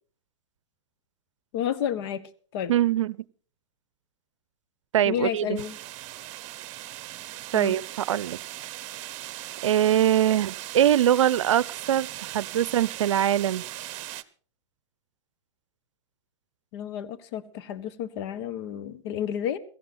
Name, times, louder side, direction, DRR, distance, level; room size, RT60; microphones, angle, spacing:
voice 1, 1.5-2.2 2.5-2.7 5.0-5.8 7.5-7.7 16.7-19.6, left 9 dB, 55° left, 12 dB, 1.4 m, -31 dB
voice 2, 2.7-3.1 4.9-5.6 7.5-7.8 8.1-8.4 9.6-13.6, right 11 dB, 75° right, 22 dB, 0.6 m, -22 dB
sound 1, 5.6-14.2, right 15 dB, 45° right, 0.9 m, -39 dB
17.0 x 14.5 x 4.2 m, 0.43 s
hypercardioid pair, 110°, 16 cm